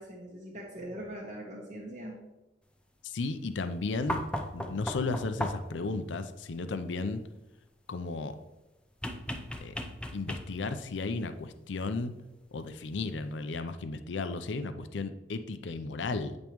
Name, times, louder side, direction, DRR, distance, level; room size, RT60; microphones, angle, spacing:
voice 1, 0.0-2.2, right 1 dB, 40° right, -2 dB, 0.9 m, -42 dB
voice 2, 3.0-4.2 4.5-7.2 7.9-8.4 9.6-9.7 10.1-12.1 12.5-16.4, left 3 dB, 90° left, 10 dB, 0.5 m, -34 dB
sound 1, 4.1-5.8 9.0-10.8 12.3-12.4, left 1 dB, 5° left, 0.5 m, -36 dB
8.3 x 5.3 x 3.0 m, 0.98 s
head